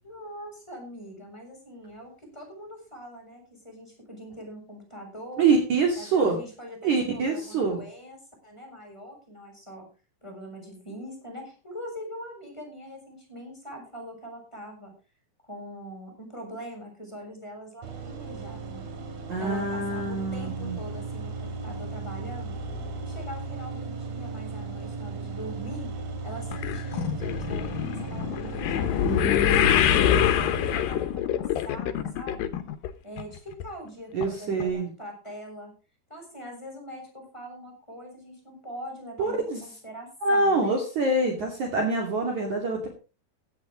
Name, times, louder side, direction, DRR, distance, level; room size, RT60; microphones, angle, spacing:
voice 1, 0.0-5.5 6.0-9.9 10.2-14.9 15.4-18.9 19.4-22.6 23.0-25.9 26.2-28.9 29.3-32.5 33.0-35.7 36.1-40.8, equal, 5° left, 1 dB, 6.7 m, -42 dB
voice 2, 5.4-6.4 6.8-7.8 19.3-20.8 29.0-30.2 34.1-34.9 39.2-39.6 40.2-42.9, right 3 dB, 50° right, 1 dB, 3.6 m, -26 dB
sound 1, 17.8-30.8, right 4 dB, 65° right, 4.4 m, -36 dB
sound 2, 26.5-32.9 33.2-33.7 34.2-34.3 34.6-34.7, left 10 dB, 70° left, 2.6 m, -25 dB
16.0 x 11.5 x 3.8 m, 0.32 s
omnidirectional pair, 4.6 m